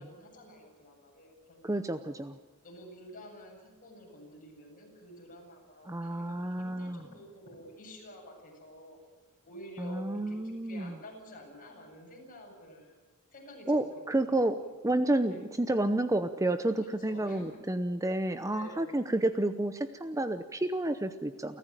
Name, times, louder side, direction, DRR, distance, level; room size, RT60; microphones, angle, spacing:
voice 1, 0.0-2.0 2.6-9.0 9.4-13.0 13.3-14.7 15.3-15.5 16.8-17.5 18.1-18.2 18.5-19.4, equal, 40° left, 0 dB, 7.9 m, -50 dB
voice 2, 1.6-2.4 5.9-7.0 9.8-10.9 13.7-14.6 14.8-21.6, right 1 dB, 15° right, 10 dB, 0.7 m, -30 dB
29.5 x 14.5 x 9.0 m, 1.3 s
head